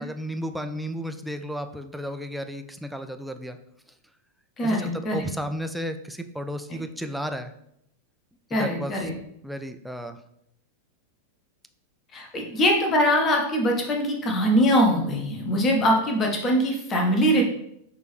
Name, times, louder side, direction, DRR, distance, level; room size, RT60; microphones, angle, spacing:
voice 1, 0.0-3.6 4.6-7.5 8.5-9.0 9.4-10.2, equal, ahead, 7 dB, 0.3 m, -33 dB
voice 2, 4.6-5.2 6.7-6.8 8.5-9.1 12.1-17.4, equal, 25° left, 1 dB, 0.9 m, -22 dB
6.1 x 2.7 x 3.1 m, 0.76 s
figure-of-eight pair, 90°, 0 cm